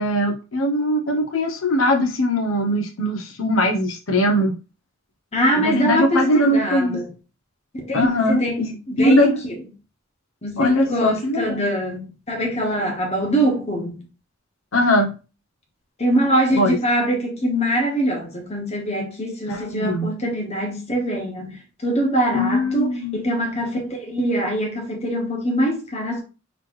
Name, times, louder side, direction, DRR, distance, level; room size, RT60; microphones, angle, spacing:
voice 1, 0.0-4.5 5.6-7.0 7.9-8.7 9.0-9.4 10.6-11.6 14.7-15.1 16.5-16.8 19.5-20.1 22.3-23.2, left 1 dB, 90° left, 0.7 m, -21 dB
voice 2, 5.3-7.1 7.7-9.6 10.4-14.0 16.0-26.2, right 1 dB, 35° left, 1.2 m, -23 dB
4.0 x 3.1 x 3.0 m
head